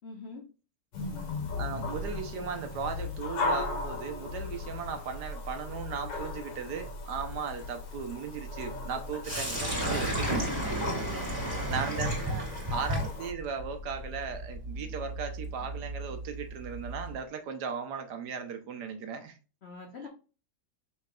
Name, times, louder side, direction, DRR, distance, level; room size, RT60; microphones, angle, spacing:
voice 1, 0.0-0.4 10.9-11.3 11.9-12.1 19.6-20.1, left 4 dB, 50° left, 0.8 m, -44 dB
sound 1, 0.9-13.3, left 3 dB, 80° left, 1.7 m, -37 dB
voice 2, 1.6-10.5 11.7-12.4 12.7-19.4 20.0-20.1, right 6 dB, 70° right, 1.3 m, -37 dB
Sink (filling or washing), 9.2-17.2, right 1 dB, 15° right, 2.1 m, -33 dB
5.4 x 3.8 x 2.3 m
omnidirectional pair, 1.9 m